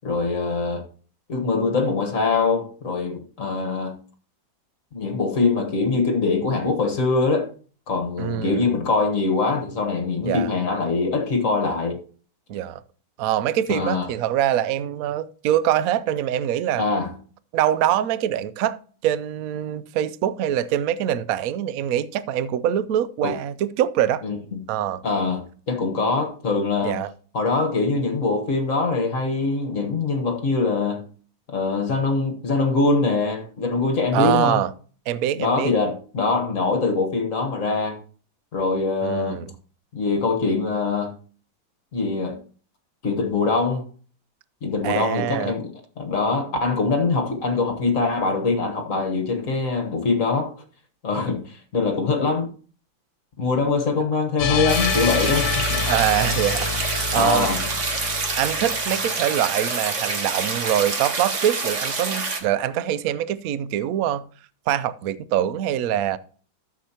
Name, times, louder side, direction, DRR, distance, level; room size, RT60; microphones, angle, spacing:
voice 1, 0.0-0.8 1.3-4.0 4.9-7.5 7.9-12.0 13.7-14.1 16.8-17.2 23.2-23.3 24.2-24.6 25.0-27.1 27.3-31.1 31.5-34.6 35.4-38.0 38.5-39.5 39.9-41.1 41.9-42.4 43.0-43.9 44.6-50.5 51.0-52.5 53.4-55.8 57.1-57.7, left 3 dB, 45° left, 1.5 m, -23 dB
voice 2, 8.2-8.7 10.3-10.5 12.5-12.8 13.2-16.8 17.5-18.8 19.0-24.2 24.7-25.0 26.8-27.1 34.1-34.7 35.1-35.7 39.0-39.5 44.8-45.5 55.9-57.5 58.4-64.3 64.7-66.2, right 11 dB, 80° right, 0.8 m, -24 dB
sound 1, 54.4-59.5, left 5 dB, 65° left, 1.5 m, -27 dB
sound 2, 54.7-62.4, right 4 dB, 40° right, 1.5 m, -27 dB
13.0 x 7.2 x 2.9 m
omnidirectional pair, 2.1 m